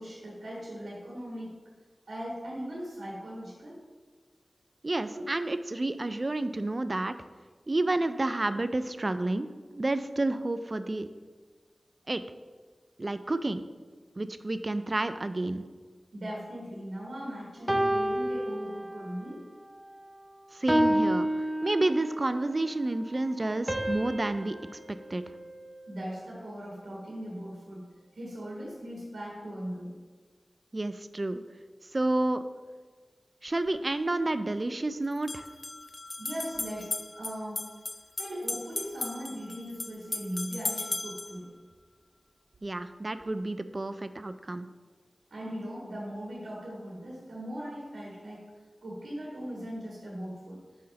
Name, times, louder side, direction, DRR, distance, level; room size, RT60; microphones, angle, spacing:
voice 1, 0.0-1.5 2.1-3.7 5.1-5.2 16.1-19.4 25.9-27.9 28.1-29.9 36.2-37.6 38.2-41.5 45.3-48.5 48.8-50.6, equal, 90° right, -5 dB, 1.4 m, -39 dB
voice 2, 4.8-7.1 7.7-11.1 12.1-12.2 13.0-13.6 14.2-15.6 20.5-21.3 21.6-24.6 25.1-25.2 30.7-31.4 31.9-32.4 33.4-35.4 42.6-44.7, right 2 dB, 40° right, 11 dB, 0.3 m, -30 dB
sound 1, 17.7-19.2 19.7-20.0 20.7-22.3 23.7-26.1, equal, 15° right, 0.7 m, -30 dB
sound 2, 33.5-33.6 35.1-41.4, left 2 dB, 45° left, 0.4 m, -37 dB
5.7 x 3.7 x 5.6 m, 1.4 s
wide cardioid pair, 55°, 0 cm